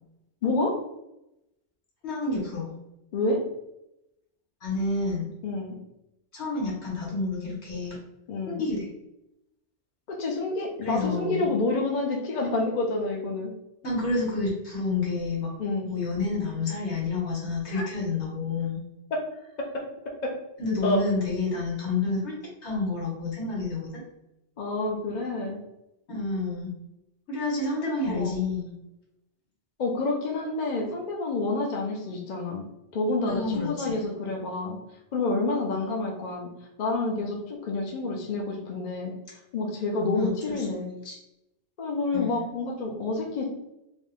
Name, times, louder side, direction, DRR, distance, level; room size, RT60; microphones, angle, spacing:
voice 1, 0.4-0.8 3.1-3.4 5.4-5.7 8.3-8.6 10.1-13.5 15.6-15.9 17.7-17.8 19.1-19.2 19.6-20.3 20.8-21.0 24.6-25.6 28.1-28.4 29.8-32.6 32.9-34.8 35.1-36.5 36.8-39.1 39.5-40.9 41.8-43.4, left 2 dB, 50° left, 0 dB, 0.7 m, -28 dB
voice 2, 2.0-2.8 4.6-5.3 6.3-8.0 8.4-8.9 10.8-11.5 13.8-15.5 15.9-18.8 20.6-22.3 22.6-23.9 26.1-26.7 27.3-28.7 33.3-33.9 40.1-40.7 41.0-41.1 42.1-42.4, left 3 dB, 75° left, -4 dB, 1.7 m, -29 dB
3.8 x 2.2 x 3.5 m, 0.88 s
omnidirectional pair, 1.1 m